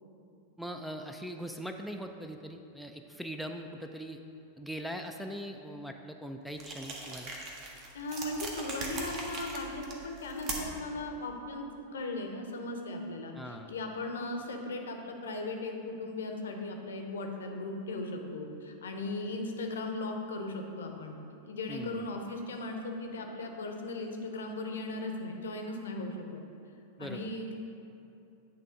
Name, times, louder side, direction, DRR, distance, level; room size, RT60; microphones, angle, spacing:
voice 1, 0.6-4.2 4.6-7.3 13.3-13.7 21.7-22.1 27.0-27.2, equal, ahead, 5 dB, 0.3 m, -41 dB
sound 1, 6.6-10.9, right 2 dB, 35° right, 1.0 m, -40 dB
voice 2, 7.9-21.1 21.5-26.4 27.0-27.5, left 2 dB, 65° left, 3 dB, 0.7 m, -37 dB
8.7 x 3.5 x 5.0 m, 2.8 s
figure-of-eight pair, 90°, 0 cm